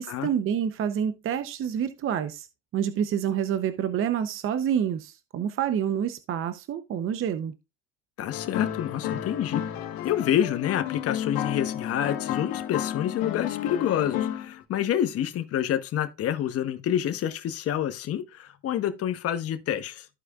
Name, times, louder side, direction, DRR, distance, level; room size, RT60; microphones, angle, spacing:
voice 1, 0.0-2.5 2.7-7.5, right 9 dB, 35° right, 0.7 m, -28 dB
voice 2, 8.2-9.7 10.0-20.1, left 10 dB, 40° left, 1.0 m, -28 dB
sound 1, 8.3-14.6, left 11 dB, 65° left, 1.7 m, -32 dB
14.0 x 4.9 x 2.4 m
supercardioid pair, 110°, 36 cm